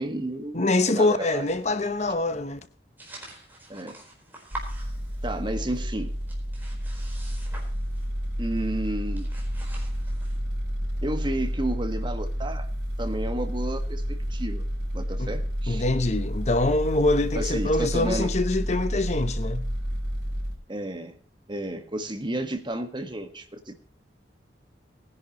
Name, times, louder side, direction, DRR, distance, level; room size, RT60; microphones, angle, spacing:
voice 1, 0.0-1.5 3.7-4.0 5.2-6.1 8.4-9.3 11.0-12.7 13.0-14.6 14.9-15.8 17.3-18.3 20.7-21.1 21.5-23.7, right 1 dB, 25° right, 1.5 m, -32 dB
voice 2, 0.5-2.6 15.2-15.3 15.7-19.7, left 2 dB, 40° left, 0.9 m, -24 dB
sound 1, 3.0-5.5 5.7-8.2 8.6-8.7 9.0-10.4, right 2 dB, 10° right, 4.4 m, -45 dB
sound 2, 4.5-20.6, equal, 85° right, 5.6 m, -30 dB
19.5 x 10.5 x 3.1 m
head